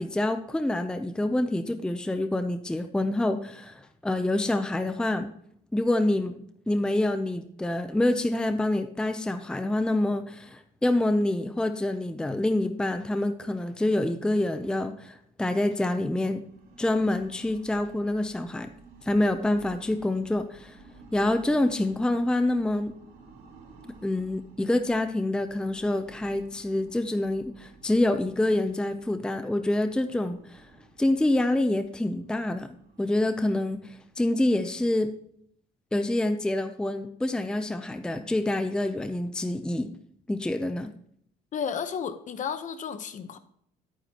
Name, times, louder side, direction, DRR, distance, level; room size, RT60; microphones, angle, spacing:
voice 1, 0.0-5.3 5.7-6.4 6.7-16.4 16.8-18.7 19.0-20.8 21.1-22.9 24.0-30.6 31.0-35.1 35.9-39.9 40.3-40.9, left 1 dB, 5° left, 8 dB, 0.5 m, -27 dB
sound 1, 16.3-34.9, right 3 dB, 65° right, 3.4 m, -54 dB
voice 2, 41.5-43.4, left 7 dB, 50° left, 10 dB, 0.9 m, -32 dB
11.0 x 9.1 x 2.9 m, 0.67 s
cardioid pair, 110°, 17 cm